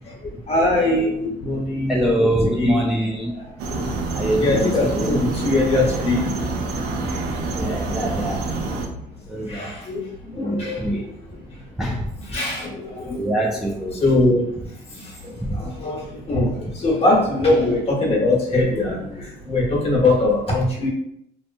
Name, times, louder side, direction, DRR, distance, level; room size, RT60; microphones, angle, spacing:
voice 1, 0.5-2.8 3.7-3.8 4.4-6.5 7.0-7.2 9.3-10.9 12.3-13.3 13.9-14.5 14.9-20.9, left 2 dB, 35° left, -3 dB, 1.1 m, -22 dB
voice 2, 1.9-3.3 4.1-5.2 7.5-8.5 9.3-9.8 10.3-11.0 11.8-12.1 13.1-14.1 15.4-15.6 16.6-16.7, right 1 dB, ahead, -2 dB, 0.3 m, -24 dB
sound 1, 3.6-8.9, right 3 dB, 70° right, 0.5 m, -27 dB
2.8 x 2.2 x 2.5 m, 0.73 s
cardioid pair, 110°, 17 cm